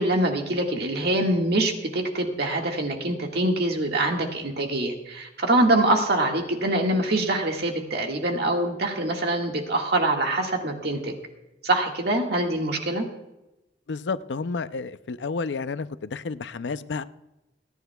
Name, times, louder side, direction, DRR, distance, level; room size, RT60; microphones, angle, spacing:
voice 1, 0.0-11.1 11.6-13.1, right 1 dB, 65° right, 1.8 m, -24 dB
voice 2, 13.9-17.0, left 4 dB, 85° left, 0.5 m, -31 dB
29.5 x 10.0 x 2.3 m
head